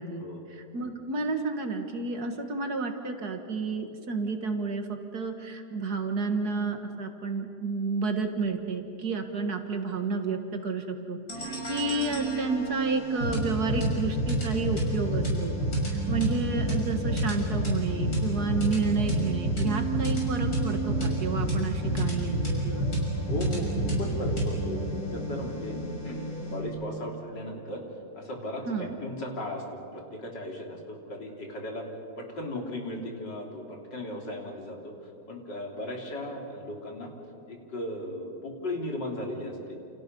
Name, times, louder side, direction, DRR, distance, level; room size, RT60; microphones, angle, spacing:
voice 1, 0.5-15.5 15.9-22.4 22.6-22.9 28.7-29.0, right 4 dB, 60° right, 5 dB, 2.2 m, -31 dB
sound 1, 11.3-26.6, right 1 dB, 55° left, 6.7 m, -29 dB
voice 2, 23.3-25.8 26.0-27.8 28.1-31.9 32.2-34.9 35.3-37.1 37.5-39.8, left 1 dB, 70° left, 0 dB, 3.9 m, -36 dB
29.0 x 29.0 x 5.4 m, 2.7 s
omnidirectional pair, 1.9 m